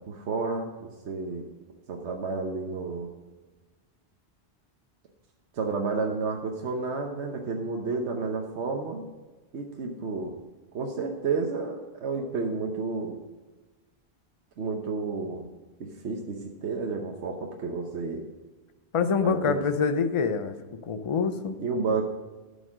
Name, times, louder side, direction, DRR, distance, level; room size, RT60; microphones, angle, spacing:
voice 1, 0.1-1.4 1.9-3.1 5.5-9.0 9.5-10.4 10.7-13.1 14.6-15.5 15.8-18.2 19.2-19.6 21.6-22.0, right 4 dB, 80° right, 1 dB, 1.2 m, -31 dB
voice 2, 18.9-20.6 20.9-21.6, left 5 dB, 35° left, 9 dB, 0.6 m, -25 dB
11.0 x 5.4 x 6.2 m, 1.2 s
omnidirectional pair, 1.1 m